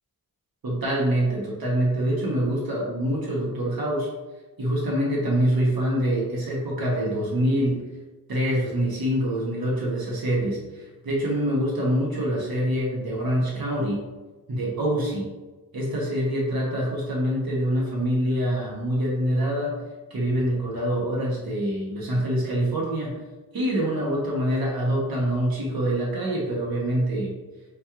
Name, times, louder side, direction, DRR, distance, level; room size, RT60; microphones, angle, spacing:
voice 1, 0.6-4.1 4.6-7.8 8.3-14.0 14.5-15.3 15.7-23.2 23.5-27.4, right 1 dB, 70° right, -4 dB, 1.0 m, -25 dB
5.1 x 2.3 x 2.9 m, 1.2 s
wide cardioid pair, 100°, 37 cm